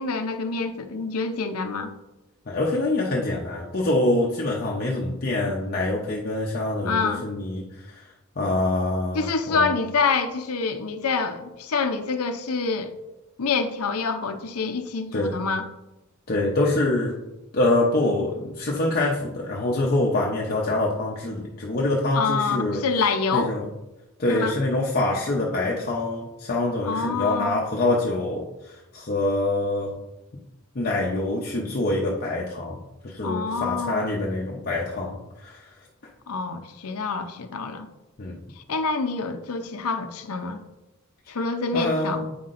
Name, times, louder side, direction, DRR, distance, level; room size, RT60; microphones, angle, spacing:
voice 1, 0.0-1.9 6.8-7.3 9.1-12.9 13.4-15.7 22.1-23.5 24.3-24.6 26.8-27.6 33.2-34.1 36.3-37.9 38.6-40.6 41.3-42.3, left 4 dB, 85° left, 0.6 m, -26 dB
voice 2, 2.5-8.0 8.4-9.7 15.1-15.4 16.3-17.1 17.5-22.8 23.3-23.7 24.2-30.0 30.7-35.7 38.2-38.4 41.7-42.3, left 2 dB, 45° left, 0.7 m, -25 dB
8.5 x 5.6 x 2.5 m
head